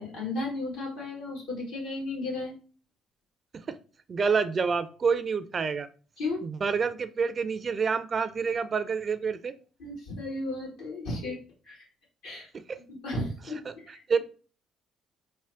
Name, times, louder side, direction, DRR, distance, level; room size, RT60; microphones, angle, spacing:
voice 1, 0.0-2.5 6.2-6.4 9.8-11.4 11.7-11.8 12.2-12.5 12.9-14.2, left 2 dB, 80° left, -4 dB, 1.7 m, -34 dB
voice 2, 4.1-5.9 6.4-9.5 12.7-12.8 13.7-13.8 14.1-14.2, right 5 dB, 45° right, 12 dB, 0.4 m, -28 dB
3.6 x 2.1 x 3.4 m, 0.38 s
hypercardioid pair, 55°, 0 cm